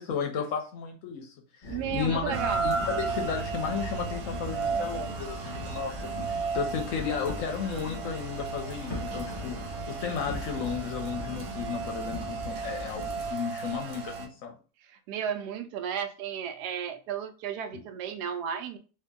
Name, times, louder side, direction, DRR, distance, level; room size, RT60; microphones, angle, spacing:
voice 1, 0.0-2.3 2.6-6.0 6.3-14.6, left 6 dB, 65° left, 3 dB, 0.9 m, -34 dB
sound 1, 1.6-13.3, left 2 dB, 20° left, 1.1 m, -40 dB
voice 2, 1.7-2.6 14.9-18.8, right 8 dB, 80° right, 8 dB, 1.1 m, -34 dB
Rain, 2.3-14.3, right 5 dB, 65° right, 0.6 m, -34 dB
2.8 x 2.7 x 3.6 m, 0.36 s
omnidirectional pair, 1.7 m